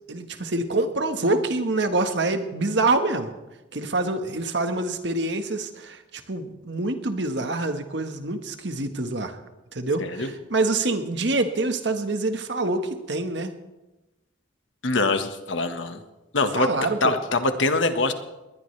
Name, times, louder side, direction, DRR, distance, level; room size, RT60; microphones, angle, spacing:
voice 1, 0.1-3.3 3.7-9.4 9.7-13.5 16.5-17.2, right 2 dB, 65° right, 7 dB, 1.5 m, -26 dB
voice 2, 10.0-10.3 14.8-16.0 16.3-16.7 17.0-18.1, left 3 dB, 80° left, 7 dB, 1.6 m, -23 dB
20.5 x 20.0 x 3.4 m, 1.0 s
head